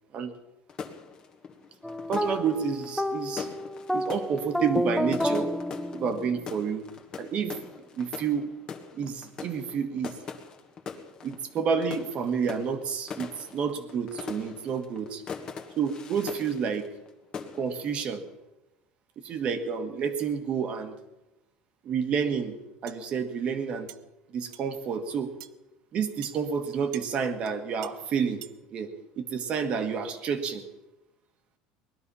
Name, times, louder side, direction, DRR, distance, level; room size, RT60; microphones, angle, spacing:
sound 1, 0.7-17.1 17.3-17.9, left 6 dB, 30° left, 1.7 m, -41 dB
sound 2, 1.8-6.4, left 1 dB, ahead, 0.5 m, -30 dB
voice 1, 2.1-3.5 3.9-5.5 5.9-6.9 7.2-7.6 7.9-8.5 8.9-10.2 11.2-15.2 15.8-16.9 17.6-18.2 19.2-20.9 21.8-22.6 22.8-23.9 24.3-25.3 25.9-28.4 28.7-28.9 29.2-30.6, right 6 dB, 40° right, 9 dB, 1.7 m, -29 dB
sound 3, 22.9-23.0 23.9-24.0 24.5-24.7 25.4-25.5 26.2-26.4 26.9-27.1 27.4-27.5 27.8-27.9 28.4-28.6, right 14 dB, 85° right, 0.7 m, -44 dB
20.0 x 12.0 x 5.6 m, 1.0 s
supercardioid pair, 140°, 3 cm